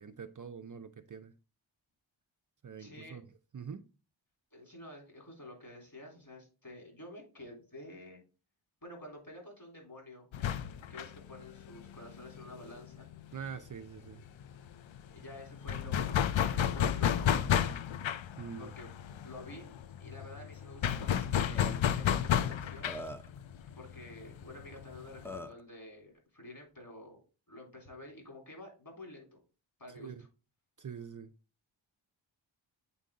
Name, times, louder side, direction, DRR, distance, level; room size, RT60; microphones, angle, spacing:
voice 1, 0.0-1.3 2.6-3.3 3.5-3.9 13.3-14.2 18.4-18.7 29.9-30.2 30.8-31.3, right 7 dB, 40° right, 0.5 m, -44 dB
voice 2, 2.8-3.2 4.5-8.2 8.8-10.3 10.9-13.1 15.1-17.8 18.6-19.7 20.0-22.9 23.7-27.2 27.5-29.4 29.8-30.3, left 1 dB, 45° left, 3.7 m, -50 dB
sound 1, 10.3-13.7 14.0-14.1 14.4-25.4, left 9 dB, 70° left, 0.6 m, -32 dB
Burping eructation, 21.2-21.3 21.5-21.7 22.5-22.6 22.9-23.4 24.8-24.9 25.2-25.6, left 1 dB, 5° left, 0.5 m, -42 dB
8.4 x 3.9 x 3.8 m
wide cardioid pair, 65°, 48 cm